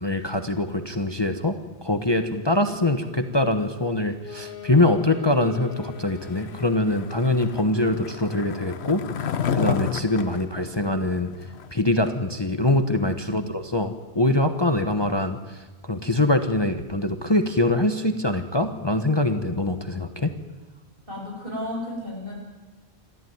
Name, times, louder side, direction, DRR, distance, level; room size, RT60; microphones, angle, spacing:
voice 1, 0.0-1.5 1.8-9.0 9.5-11.3 11.7-20.3, left 2 dB, 25° left, 7 dB, 1.1 m, -23 dB
Wind instrument woodwind instrument, 4.1-7.1, left 9 dB, 55° left, 2.7 m, -41 dB
Skateboard, 6.3-11.7, left 8 dB, 80° left, 1.2 m, -31 dB
voice 2, 12.9-13.5 21.1-22.3, left 1 dB, 55° right, -2 dB, 8.4 m, -34 dB
27.0 x 13.5 x 9.5 m, 1.2 s
omnidirectional pair, 1.1 m